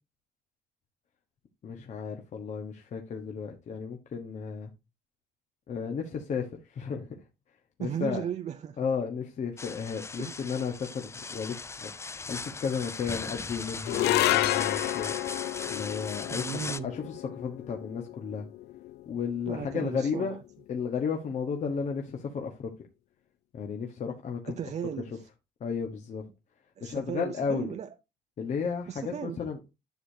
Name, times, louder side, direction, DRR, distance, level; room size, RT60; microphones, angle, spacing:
voice 1, 1.6-4.7 5.7-7.1 7.8-8.2 8.8-15.1 15.7-16.5 16.8-18.5 19.1-20.4 20.7-22.7 23.5-24.5 25.6-26.2 26.8-27.7 28.4-29.7, left 6 dB, 45° left, 1.1 m, -33 dB
voice 2, 7.8-8.9 10.2-10.4 16.3-16.9 19.5-20.4 24.5-25.3 26.8-27.9 28.9-29.4, right 8 dB, 40° right, 0.6 m, -36 dB
sound 1, 9.6-16.8, left 4 dB, 15° left, 0.4 m, -38 dB
sound 2, 13.8-20.3, left 16 dB, 75° left, 0.4 m, -31 dB
10.5 x 6.5 x 2.7 m
cardioid pair, 110°, 17 cm